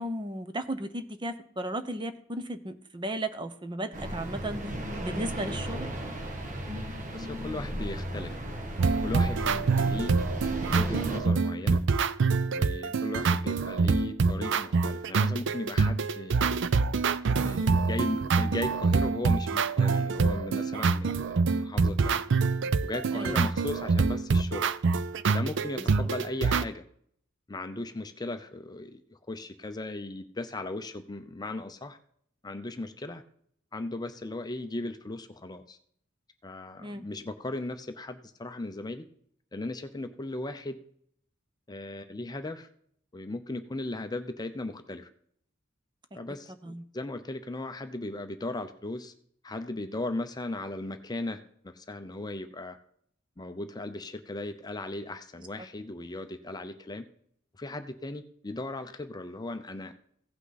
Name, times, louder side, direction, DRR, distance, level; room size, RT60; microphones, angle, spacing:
voice 1, 0.0-4.7 5.0-5.9 23.1-23.5 25.8-25.9 36.8-37.1 46.6-46.8, right 1 dB, 25° right, 10 dB, 0.7 m, -35 dB
sound 1, 3.9-11.2, equal, 40° right, 1.5 m, -35 dB
voice 2, 7.1-8.4 9.0-10.1 10.7-11.8 12.5-16.8 17.4-22.2 22.8-24.7 25.3-26.8 27.5-32.0 32.4-33.2 33.7-35.8 36.4-39.1 39.5-40.8 41.7-42.7 43.1-45.1 46.1-49.1 49.4-52.8 53.4-57.0 57.6-59.9, left 2 dB, 20° left, 8 dB, 0.6 m, -37 dB
sound 2, 8.8-26.6, right 4 dB, 60° right, 0.5 m, -26 dB
16.0 x 5.9 x 4.0 m, 0.65 s
head